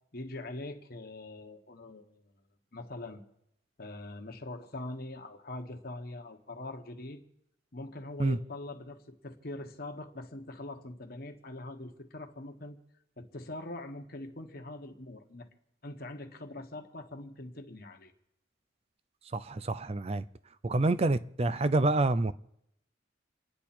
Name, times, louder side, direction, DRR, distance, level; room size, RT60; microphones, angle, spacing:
voice 1, 0.1-2.2 2.7-3.2 3.8-7.2 7.7-12.8 13.2-15.5 15.8-18.1, left 2 dB, 50° left, 1.4 m, -43 dB
voice 2, 19.3-20.2 20.6-22.3, right 2 dB, 30° right, 0.5 m, -27 dB
28.5 x 10.0 x 4.4 m
head